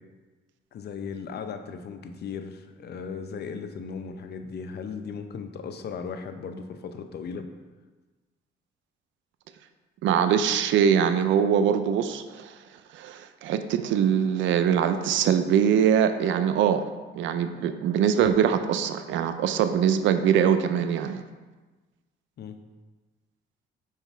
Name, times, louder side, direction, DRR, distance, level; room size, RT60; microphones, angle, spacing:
voice 1, 0.7-7.5 22.4-22.6, left 6 dB, 55° left, 7 dB, 0.6 m, -37 dB
voice 2, 10.0-12.6 12.9-16.8 17.1-21.2, right 8 dB, 75° right, 9 dB, 0.4 m, -23 dB
5.7 x 4.0 x 4.6 m, 1.3 s
cardioid pair, 90°, 20 cm